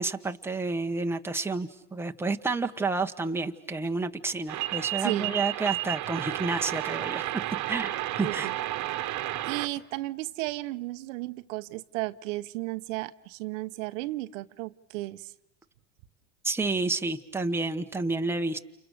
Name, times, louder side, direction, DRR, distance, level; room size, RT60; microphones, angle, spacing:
voice 1, 0.0-7.2 7.7-8.5 16.4-18.6, right 3 dB, 5° right, 5 dB, 1.1 m, -30 dB
sound 1, 4.5-9.7, right 15 dB, 50° right, 1.4 m, -32 dB
voice 2, 5.0-5.4 8.2-8.5 9.5-15.3, right 19 dB, 80° right, 11 dB, 1.0 m, -34 dB
29.5 x 29.5 x 6.6 m, 0.83 s
supercardioid pair, 110°, 37 cm